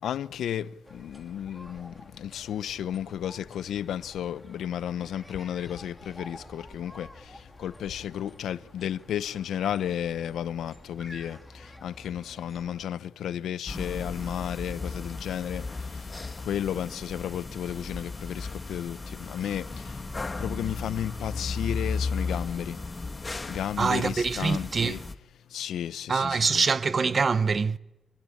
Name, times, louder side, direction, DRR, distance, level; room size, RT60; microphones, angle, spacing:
voice 1, 0.0-20.0 20.4-22.8 23.5-25.0 25.5-26.6, left 10 dB, 90° left, 0.8 m, -33 dB
sound 1, 0.8-12.9, left 1 dB, 5° left, 2.3 m, -50 dB
sound 2, 13.7-25.1, left 3 dB, 25° left, 1.6 m, -35 dB
voice 2, 23.8-25.0 26.1-27.8, right 5 dB, 40° right, 0.9 m, -25 dB
26.5 x 19.5 x 8.6 m
cardioid pair, 120°, 0 cm